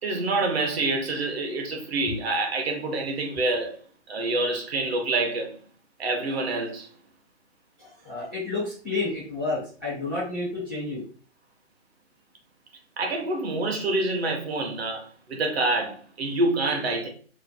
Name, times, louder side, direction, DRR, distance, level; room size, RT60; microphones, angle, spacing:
voice 1, 0.0-3.8 4.1-5.5 6.0-6.9 13.0-17.1, right 2 dB, 55° right, 0.9 m, -27 dB
voice 2, 7.8-11.0, left 3 dB, 10° left, 0.3 m, -30 dB
2.9 x 2.1 x 2.6 m
figure-of-eight pair, 140°, 37 cm